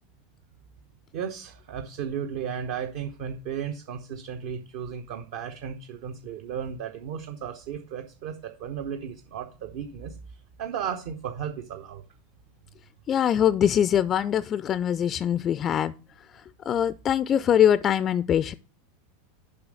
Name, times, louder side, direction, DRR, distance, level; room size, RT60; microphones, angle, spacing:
voice 1, 1.1-10.2 10.6-12.0, right 8 dB, 55° right, 0.9 m, -34 dB
voice 2, 13.1-15.9 16.7-18.5, left 9 dB, 35° left, 0.4 m, -23 dB
6.9 x 5.4 x 6.5 m
figure-of-eight pair, 85°, 0 cm